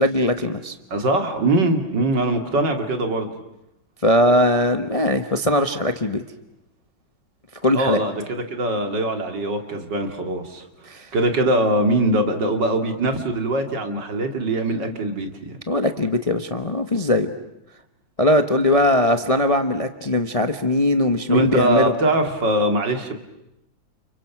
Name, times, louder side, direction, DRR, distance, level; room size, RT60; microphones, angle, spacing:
voice 1, 0.0-0.7 4.0-6.2 7.6-8.0 10.9-11.1 15.7-17.3 18.2-21.9, left 1 dB, 25° left, 7 dB, 0.9 m, -20 dB
voice 2, 0.9-3.3 7.7-10.7 11.1-15.6 21.3-23.1, right 1 dB, 60° right, 5 dB, 3.2 m, -22 dB
30.0 x 29.5 x 6.1 m, 0.88 s
omnidirectional pair, 2.2 m